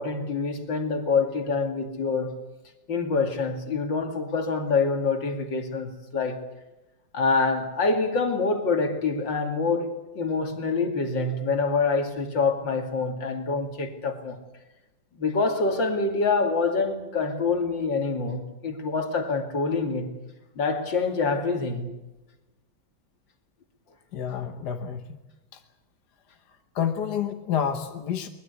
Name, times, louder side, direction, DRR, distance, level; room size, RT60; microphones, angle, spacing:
voice 1, 0.0-2.3 2.9-6.4 7.1-14.4 15.1-20.1 20.6-21.9, left 4 dB, 85° left, 3.2 m, -26 dB
voice 2, 24.1-25.2 25.5-25.6 26.7-28.3, left 8 dB, 65° left, 1.7 m, -29 dB
22.5 x 21.0 x 8.3 m
omnidirectional pair, 2.0 m